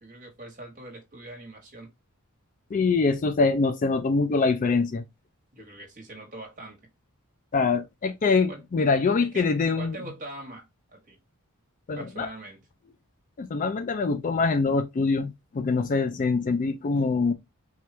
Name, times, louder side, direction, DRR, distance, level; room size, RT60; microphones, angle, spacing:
voice 1, 0.0-1.9 5.5-6.8 8.5-8.6 9.2-11.2 11.9-12.6, right 2 dB, 35° right, 1.4 m, -42 dB
voice 2, 2.7-5.0 7.5-9.9 11.9-12.3 13.4-17.3, left 4 dB, 35° left, 0.4 m, -24 dB
4.4 x 2.4 x 3.2 m
head